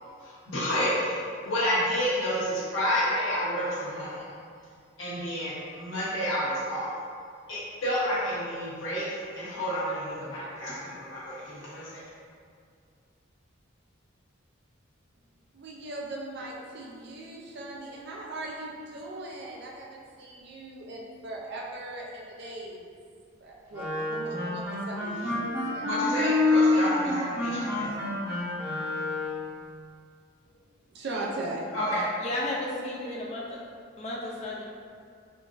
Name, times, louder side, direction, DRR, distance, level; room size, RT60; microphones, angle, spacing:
voice 1, 0.0-4.2 5.0-6.9 7.5-9.0 9.4-12.0 25.8-27.9 31.7-32.1, equal, 80° left, -9 dB, 0.9 m, -30 dB
voice 2, 15.5-22.9 23.4-25.9 30.5-30.6 30.9-31.7, right 2 dB, 55° right, -2 dB, 0.4 m, -39 dB
Wind instrument woodwind instrument, 23.7-29.5, left 2 dB, 15° right, 0.7 m, -27 dB
voice 3, 27.7-28.1 32.2-33.6 34.0-34.6, left 1 dB, 35° left, -4 dB, 0.4 m, -34 dB
3.7 x 2.5 x 2.4 m, 2.2 s
head